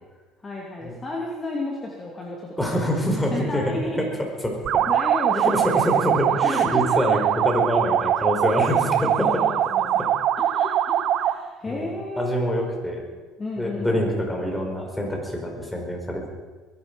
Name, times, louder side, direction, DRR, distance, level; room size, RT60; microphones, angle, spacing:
voice 1, 0.4-2.5 2.9-4.0 4.9-7.4 8.4-10.1 10.4-12.6 13.4-14.2, left 2 dB, 25° left, -2 dB, 3.0 m, -33 dB
voice 2, 2.6-3.6 3.9-4.0 4.4-4.8 5.4-9.4 11.6-11.9 12.2-13.0 13.6-16.3, equal, 10° left, 1 dB, 5.0 m, -25 dB
sound 1, 4.7-11.5, right 10 dB, 60° right, 0.8 m, -22 dB
22.0 x 11.5 x 5.5 m, 1.4 s
supercardioid pair, 85°, 0 cm